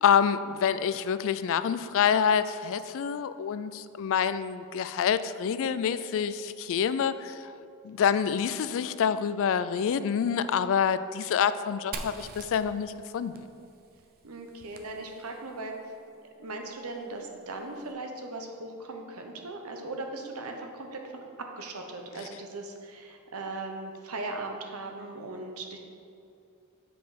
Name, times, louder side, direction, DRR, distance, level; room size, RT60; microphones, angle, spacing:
voice 1, 0.0-7.5 7.8-13.5, left 7 dB, 65° left, 13 dB, 0.3 m, -27 dB
Fire, 11.9-15.6, right 4 dB, 45° right, 0.6 m, -44 dB
voice 2, 14.2-15.8 16.2-25.8, right 2 dB, 80° right, 3 dB, 1.0 m, -39 dB
8.0 x 5.1 x 5.0 m, 2.6 s
head